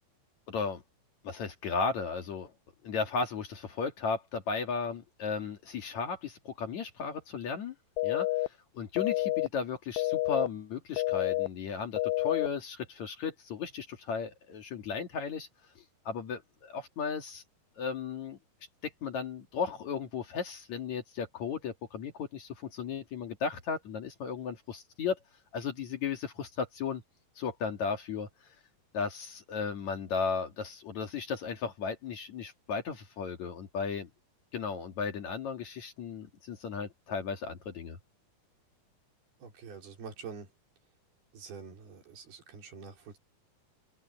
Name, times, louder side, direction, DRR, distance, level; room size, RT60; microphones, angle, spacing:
voice 1, 0.5-0.8 1.2-2.5 2.8-7.7 8.0-15.5 15.8-17.4 17.8-18.4 18.8-25.2 25.5-27.0 27.4-28.3 28.9-34.1 34.5-38.0, left 5 dB, 55° left, 2.9 m, -35 dB
sound 1, 8.0-8.5 9.0-9.5 10.0-10.5 11.0-11.5 12.0-12.5, left 17 dB, 80° left, 2.3 m, -29 dB
voice 2, 39.4-40.5 41.3-43.2, right 5 dB, 80° right, 6.3 m, -46 dB
open air
omnidirectional pair, 4.5 m